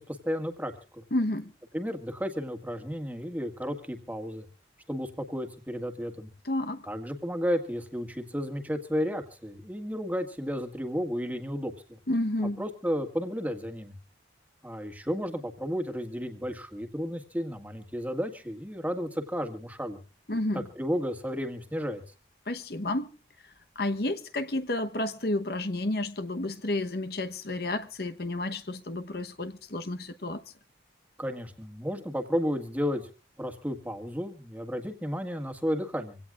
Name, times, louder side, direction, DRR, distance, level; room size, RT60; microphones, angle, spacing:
voice 1, 0.0-1.0 1.7-4.5 4.9-6.3 6.9-12.0 12.6-13.9 14.6-20.0 20.5-22.1 31.2-33.1 33.4-36.2, equal, 10° right, 1.8 m, -33 dB
voice 2, 1.1-1.5 6.4-6.8 12.1-12.6 20.3-20.7 22.5-23.1 23.8-30.4, left 1 dB, 55° left, 1.1 m, -31 dB
25.5 x 17.0 x 2.5 m
head